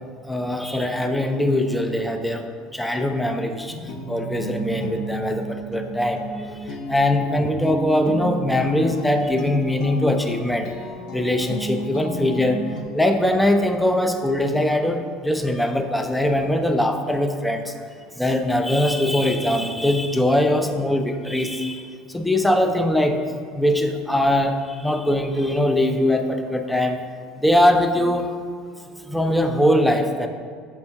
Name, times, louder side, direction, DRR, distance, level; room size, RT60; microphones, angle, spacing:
voice 1, 0.2-3.7 4.1-10.7 11.1-12.6 12.9-17.7 18.2-23.2 23.5-27.0 27.4-28.3 29.1-30.3, left 1 dB, 5° left, 6 dB, 0.3 m, -21 dB
sound 1, 3.7-12.8, right 1 dB, 50° left, 0.7 m, -32 dB
5.4 x 3.5 x 5.7 m, 2.1 s
cardioid pair, 160°, 0 cm